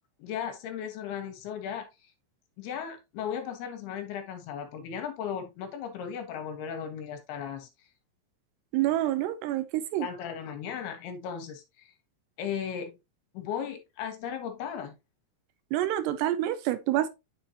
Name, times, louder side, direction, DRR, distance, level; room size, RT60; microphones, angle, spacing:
voice 1, 0.2-1.9 2.6-7.7 10.0-11.9 12.4-13.0 13.3-15.0, left 8 dB, 75° left, 2.9 m, -36 dB
voice 2, 8.7-10.1 15.7-17.1, right 13 dB, 80° right, 2.7 m, -27 dB
9.9 x 4.3 x 2.8 m
omnidirectional pair, 5.0 m